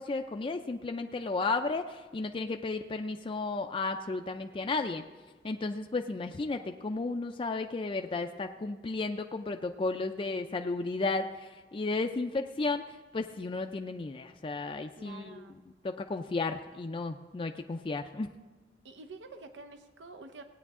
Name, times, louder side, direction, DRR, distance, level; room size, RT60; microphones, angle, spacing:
voice 1, 0.0-5.0 5.4-18.3, left 3 dB, 30° left, 5 dB, 0.4 m, -33 dB
voice 2, 15.0-15.5 18.8-20.4, right 3 dB, 90° right, 7 dB, 0.7 m, -48 dB
17.0 x 9.1 x 3.6 m, 1.3 s
head